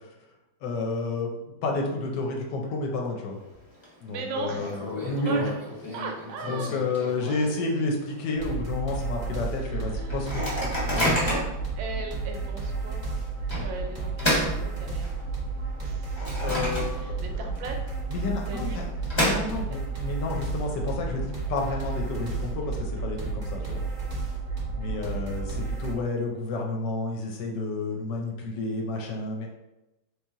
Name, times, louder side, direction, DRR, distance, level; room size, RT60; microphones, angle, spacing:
voice 1, 0.6-1.3 1.6-3.4 4.0-5.4 6.5-10.5 10.9-11.1 16.4-17.3 18.1-18.7 19.1-23.8 24.7-29.5, left 3 dB, 70° left, 1 dB, 1.1 m, -30 dB
Microwave oven, 3.3-3.8 4.1-4.2 4.6-7.6 8.1-8.2 8.4-8.8 9.3-9.4 10.1-11.6 12.2-12.4 13.5-15.3 15.8-17.3 17.6-17.7 18.5-19.9, left 1 dB, 25° left, 0.7 m, -30 dB
voice 2, 4.1-4.7 5.0-5.5 5.9-6.7 7.2-7.6 9.3-13.0 13.6-15.1 15.8-16.5 16.9-17.8 18.3-18.9 19.7-19.8, right 3 dB, 85° right, 2 dB, 1.4 m, -38 dB
sound 1, 8.4-25.9, right 4 dB, 45° right, 0.6 m, -32 dB
3.1 x 2.9 x 3.5 m, 0.97 s
omnidirectional pair, 2.1 m